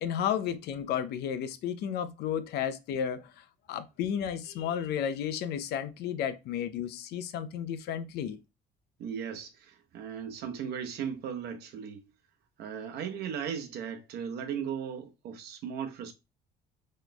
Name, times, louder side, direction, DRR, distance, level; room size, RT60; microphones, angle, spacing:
voice 1, 0.0-8.4, left 9 dB, 75° left, 0.5 m, -33 dB
voice 2, 9.0-12.1 12.6-16.1, right 7 dB, 75° right, 0.8 m, -37 dB
3.1 x 2.2 x 3.8 m
cardioid pair, 110°, 17 cm